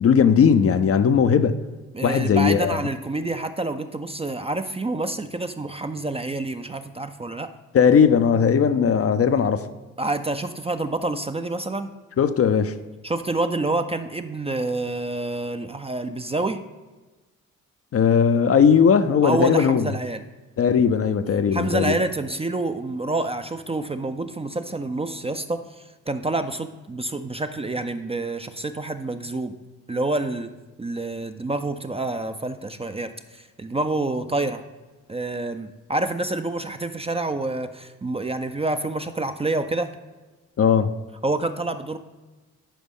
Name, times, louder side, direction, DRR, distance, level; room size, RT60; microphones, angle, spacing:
voice 1, 0.0-1.6 2.0-2.8 7.7-9.7 12.2-12.7 17.9-19.9 20.6-21.9 40.6-40.9, left 7 dB, 40° left, 0.5 m, -18 dB
voice 2, 1.9-7.5 10.0-11.9 13.0-16.6 19.2-20.3 21.5-29.6 29.9-30.5 30.8-34.6 35.1-39.9 41.2-42.0, right 2 dB, 15° right, 0.5 m, -27 dB
9.9 x 5.1 x 3.7 m
hypercardioid pair, 45°, 37 cm